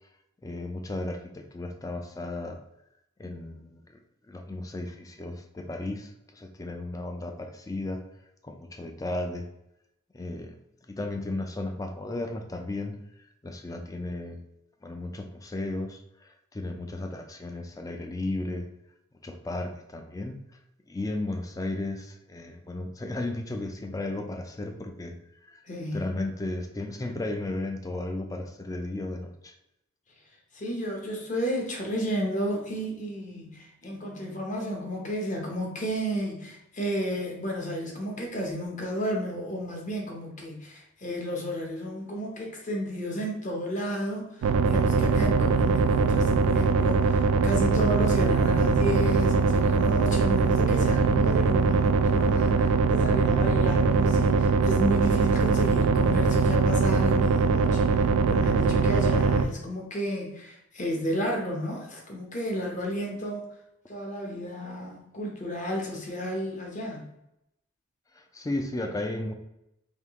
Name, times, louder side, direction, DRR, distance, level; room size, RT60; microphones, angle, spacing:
voice 1, 0.4-2.6 3.2-4.0 4.3-8.0 8.4-9.5 10.1-10.6 10.9-13.0 13.4-14.4 14.8-18.7 19.2-20.4 20.9-25.2 25.5-25.6 25.9-29.5 68.1-69.3, left 2 dB, 15° left, 5 dB, 0.3 m, -34 dB
voice 2, 25.7-26.0 30.5-63.5 63.9-67.0, equal, 35° left, 0 dB, 0.9 m, -32 dB
sound 1, 44.4-59.4, right 4 dB, 75° right, 0.3 m, -22 dB
3.6 x 2.7 x 3.5 m, 0.84 s
head